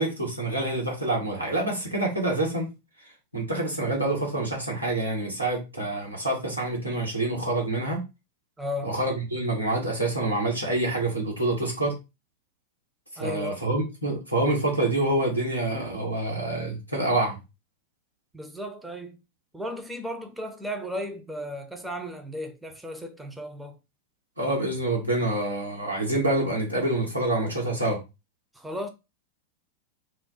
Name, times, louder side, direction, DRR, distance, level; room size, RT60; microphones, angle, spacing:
voice 1, 0.0-2.7 3.3-8.0 8.8-11.9 13.2-17.4 24.4-28.0, right 2 dB, 90° right, 1.1 m, -27 dB
voice 2, 8.6-8.9 13.2-13.6 18.3-19.2 19.5-23.8 28.5-28.9, equal, 5° right, 0.5 m, -35 dB
2.4 x 2.2 x 3.8 m
figure-of-eight pair, 90°, 0 cm